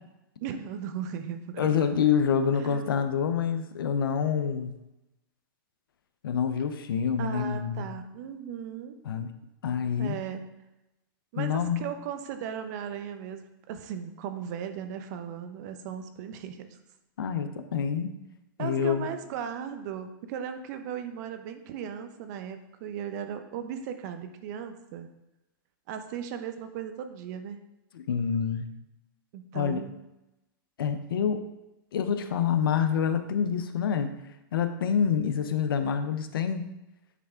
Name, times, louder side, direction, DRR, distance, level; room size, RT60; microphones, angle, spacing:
voice 1, 0.4-1.8 2.5-2.9 7.2-9.0 10.0-10.5 11.3-16.8 18.6-25.1 25.9-27.6 29.3-30.0, right 8 dB, 50° right, 8 dB, 0.7 m, -37 dB
voice 2, 1.6-4.7 6.2-7.9 9.1-9.3 9.6-10.2 11.4-11.9 17.2-18.1 18.6-19.1 27.9-28.7 29.5-29.8 30.8-31.4 31.9-34.1 34.5-36.7, left 7 dB, 85° left, 9 dB, 0.6 m, -27 dB
8.3 x 3.4 x 3.5 m, 0.94 s
hypercardioid pair, 135°, 12 cm